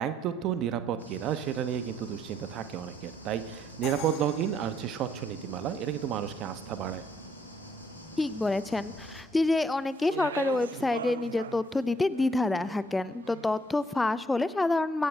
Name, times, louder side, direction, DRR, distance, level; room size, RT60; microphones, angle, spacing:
voice 1, 0.0-7.1, right 9 dB, 35° right, 11 dB, 0.7 m, -32 dB
sound 1, 1.0-9.2, left 1 dB, 90° left, 1.8 m, -47 dB
Crash cymbal, 3.8-5.7, left 10 dB, 40° left, 0.9 m, -44 dB
voice 2, 8.2-15.1, left 2 dB, 10° left, 16 dB, 0.4 m, -27 dB
Speech, 9.4-13.7, right 8 dB, 65° right, 0.4 m, -41 dB
22.0 x 8.6 x 3.3 m, 1.4 s
figure-of-eight pair, 90°, 0 cm